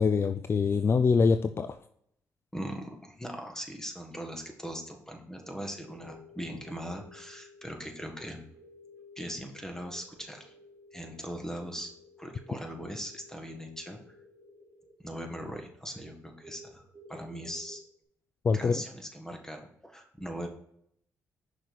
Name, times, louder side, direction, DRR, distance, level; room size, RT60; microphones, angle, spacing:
voice 1, 0.0-1.7 18.4-18.8, left 5 dB, 40° left, 9 dB, 0.4 m, -24 dB
voice 2, 2.5-8.4 9.2-10.5 10.9-11.9 12.2-14.2 15.0-16.8 17.1-17.8 18.5-20.5, equal, 10° left, 3 dB, 1.7 m, -40 dB
sound 1, 5.4-17.8, left 2 dB, 40° right, 1.3 m, -55 dB
6.0 x 5.0 x 4.1 m, 0.71 s
supercardioid pair, 55°, 7 cm